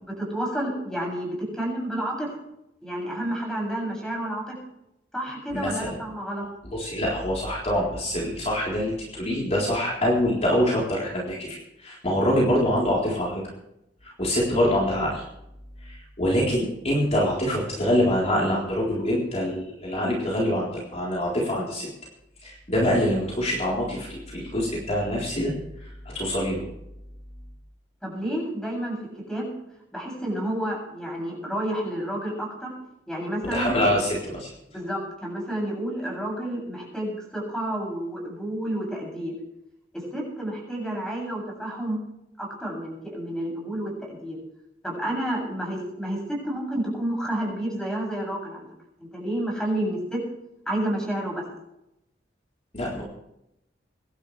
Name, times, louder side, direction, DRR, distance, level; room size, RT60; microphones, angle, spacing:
voice 1, 0.1-2.4 2.8-4.6 5.1-6.5 28.0-29.0 29.3-29.5 29.9-32.7 33.1-33.9 34.7-39.4 39.9-42.0 42.4-44.4 44.8-48.6 49.0-50.2 50.7-51.4, right 1 dB, 5° left, -1 dB, 7.6 m, -30 dB
voice 2, 5.5-6.0 6.7-13.4 14.0-15.2 15.8-21.9 22.4-26.6 33.5-34.5 52.7-53.0, equal, 35° left, -4 dB, 3.9 m, -25 dB
24.5 x 12.0 x 3.3 m, 0.84 s
head